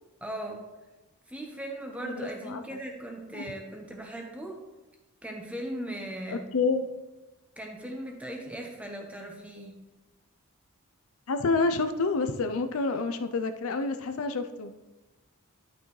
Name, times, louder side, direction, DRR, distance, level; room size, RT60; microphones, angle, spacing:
voice 1, 0.2-0.6 1.3-4.6 5.2-6.5 7.6-9.8, right 1 dB, 5° right, 1 dB, 1.0 m, -38 dB
voice 2, 2.0-2.6 3.3-3.4 6.3-6.9 11.3-14.7, left 3 dB, 70° left, 9 dB, 0.5 m, -28 dB
11.0 x 6.0 x 3.2 m, 1.1 s
head